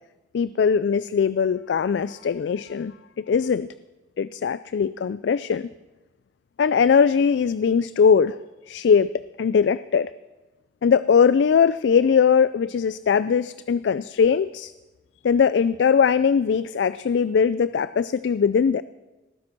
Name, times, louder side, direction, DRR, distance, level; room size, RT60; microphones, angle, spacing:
voice 1, 0.3-3.7 4.2-5.7 6.6-8.4 8.7-10.1 10.8-14.7 15.2-18.8, left 6 dB, 90° left, 15 dB, 0.3 m, -20 dB
18.5 x 9.7 x 5.9 m, 1.2 s
head